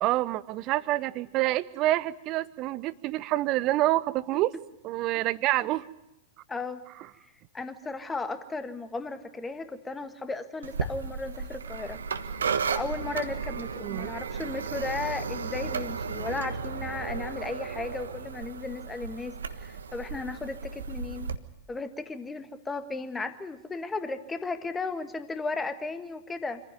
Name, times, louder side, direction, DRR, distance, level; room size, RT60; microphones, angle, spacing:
voice 1, 0.0-4.5 4.8-5.8 13.8-14.1, right 16 dB, 35° right, 18 dB, 0.9 m, -27 dB
voice 2, 6.5-6.8 7.5-12.0 12.7-21.3 21.7-26.6, left 3 dB, 10° left, 10 dB, 1.6 m, -35 dB
sound 1, 10.6-21.3, right 5 dB, 70° right, 1.4 m, -34 dB
26.0 x 15.5 x 9.2 m, 0.90 s
figure-of-eight pair, 100°, 0 cm